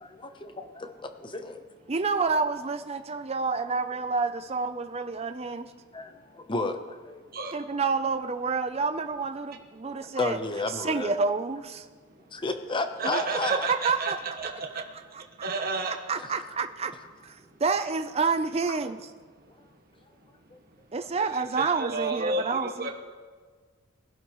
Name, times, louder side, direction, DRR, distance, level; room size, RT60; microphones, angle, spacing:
voice 1, 0.0-1.7 5.9-7.2 9.8-11.1 12.3-13.7 16.2-16.5 20.5-20.6, left 3 dB, 25° left, 7 dB, 0.9 m, -33 dB
voice 2, 1.9-5.7 7.5-10.4 10.7-11.8 13.0-13.2 13.5-14.2 15.1-15.5 15.9-16.9 17.2-19.0 20.9-22.9, right 4 dB, 30° right, 7 dB, 0.5 m, -29 dB
voice 3, 13.0-14.5 15.4-15.9 21.2-22.9, right 3 dB, 45° right, 2 dB, 1.3 m, -31 dB
21.5 x 12.0 x 3.1 m, 1.5 s
head